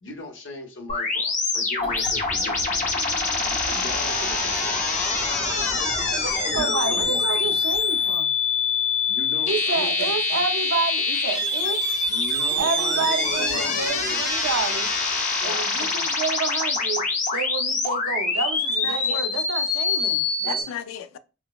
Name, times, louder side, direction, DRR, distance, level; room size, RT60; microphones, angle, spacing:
voice 1, 0.0-2.6 3.6-4.9 6.5-7.2 9.1-10.4 12.1-14.2 15.8-16.1 20.4-20.6, left 1 dB, 65° left, 0.8 m, -38 dB
sound 1, 0.9-20.6, left 4 dB, 35° left, 0.6 m, -25 dB
sound 2, 1.7-8.2, right 1 dB, 10° right, 0.4 m, -40 dB
voice 2, 5.3-5.8 13.5-13.8 15.4-15.7 18.8-19.2 20.4-21.2, left 8 dB, 85° left, 0.3 m, -35 dB
voice 3, 6.2-8.3 9.4-11.8 12.6-14.9 15.4-20.3, right 5 dB, 85° right, 0.5 m, -29 dB
4.7 x 2.0 x 2.3 m
head